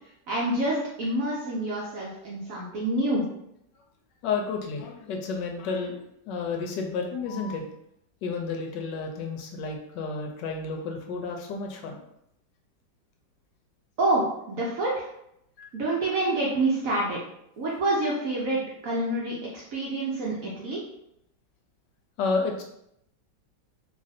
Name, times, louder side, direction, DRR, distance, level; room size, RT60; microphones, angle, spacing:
voice 1, 0.3-3.2 14.0-15.1 15.7-17.2 17.6-19.3 19.7-20.8, right 2 dB, 65° right, -4 dB, 0.9 m, -27 dB
voice 2, 4.2-6.0 6.3-7.6 8.2-12.0 15.6-15.7 22.2-22.6, left 4 dB, 75° left, 2 dB, 1.1 m, -31 dB
3.1 x 2.5 x 4.1 m, 0.78 s
omnidirectional pair, 2.0 m